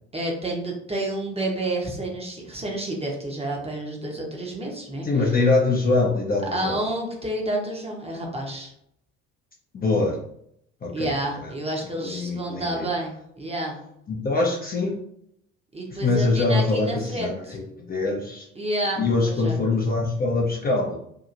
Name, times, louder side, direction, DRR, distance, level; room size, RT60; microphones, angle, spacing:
voice 1, 0.1-5.3 6.4-8.7 10.9-13.8 15.7-17.6 18.6-19.6, right 1 dB, 15° right, 0 dB, 0.8 m, -30 dB
voice 2, 5.0-6.8 9.8-10.2 10.8-11.1 12.0-12.9 14.1-14.9 15.9-18.5 19.0-21.0, left 3 dB, 20° left, -2 dB, 0.6 m, -23 dB
2.8 x 2.8 x 2.5 m, 0.71 s
figure-of-eight pair, 55°, 41 cm